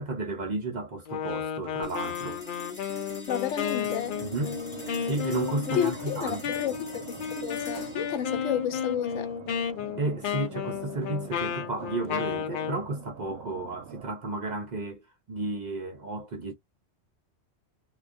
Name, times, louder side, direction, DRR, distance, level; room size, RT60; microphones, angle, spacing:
voice 1, 0.0-2.4 4.2-4.6 5.0-6.6 10.0-16.5, right 2 dB, 50° right, 0.6 m, -33 dB
Wind instrument woodwind instrument, 1.1-12.8, left 8 dB, 60° left, 0.5 m, -33 dB
sound 1, 1.8-12.4, right 1 dB, 25° left, 0.8 m, -44 dB
voice 2, 3.3-4.2 5.7-9.3, left 9 dB, 85° left, 1.0 m, -31 dB
sound 2, 3.6-14.1, right 8 dB, 85° right, 0.9 m, -46 dB
2.3 x 2.2 x 2.4 m
omnidirectional pair, 1.3 m